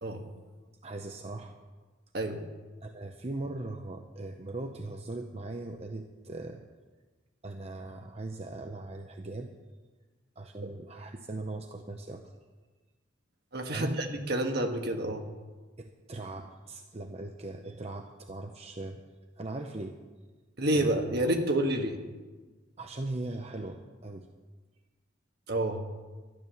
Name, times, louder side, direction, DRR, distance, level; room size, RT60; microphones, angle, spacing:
voice 1, 0.8-1.6 2.8-6.6 7.4-9.5 10.4-12.3 13.7-14.0 15.8-19.0 19.4-20.0 20.7-21.0 22.8-24.3, right 2 dB, 35° right, 5 dB, 0.6 m, -39 dB
voice 2, 13.5-15.2 20.6-22.0 25.5-25.8, right 1 dB, 55° right, 4 dB, 1.5 m, -29 dB
12.5 x 11.0 x 7.0 m, 1.3 s
head